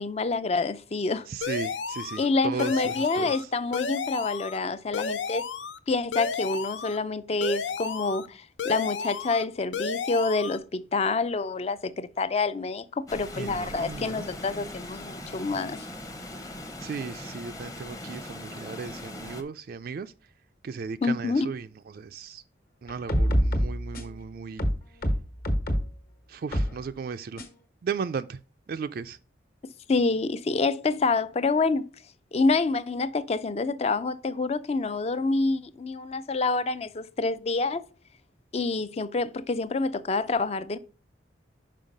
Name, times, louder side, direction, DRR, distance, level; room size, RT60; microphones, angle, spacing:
voice 1, 0.0-1.3 2.2-5.4 5.9-15.9 21.0-21.5 29.9-31.9 32.3-37.8 38.5-40.8, left 3 dB, 35° left, 0.4 m, -27 dB
voice 2, 1.3-3.5 13.3-14.3 16.8-20.1 20.6-22.4 22.8-24.7 26.3-27.4 27.8-28.4 28.7-29.2, right 5 dB, 50° right, 0.3 m, -36 dB
sound 1, 1.4-2.3 2.6-3.4 3.7-4.6 4.9-5.8 6.1-7.0 7.4-8.3 8.6-9.4 9.7-10.6, left 5 dB, 80° left, 0.6 m, -32 dB
Water, 13.1-19.4, left 1 dB, 20° left, 0.8 m, -40 dB
sound 2, 22.9-24.2 24.6-25.9 26.5-26.8 27.4-27.5, equal, 50° left, 1.3 m, -25 dB
5.6 x 5.2 x 5.1 m
head